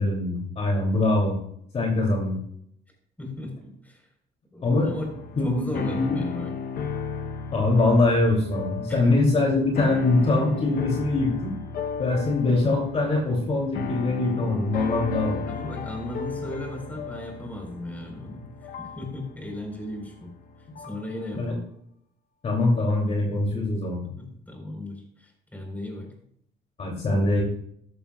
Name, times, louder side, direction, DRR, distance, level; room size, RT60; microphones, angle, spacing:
voice 1, 0.0-1.3 1.7-2.4 4.6-4.9 5.4-5.6 6.0-6.2 7.5-11.5 12.0-15.4 21.3-21.5 22.4-24.0 26.8-27.4, left 2 dB, 40° left, -1 dB, 3.0 m, -23 dB
voice 2, 3.2-4.0 4.5-5.1 5.4-6.5 8.9-9.1 15.5-18.5 18.8-20.3 20.8-21.7 24.0-26.1, left 1 dB, 10° left, 1 dB, 4.4 m, -36 dB
sound 1, 4.9-21.1, left 5 dB, 60° left, 1.0 m, -34 dB
14.0 x 11.5 x 2.4 m, 0.69 s
cardioid pair, 110°, 17 cm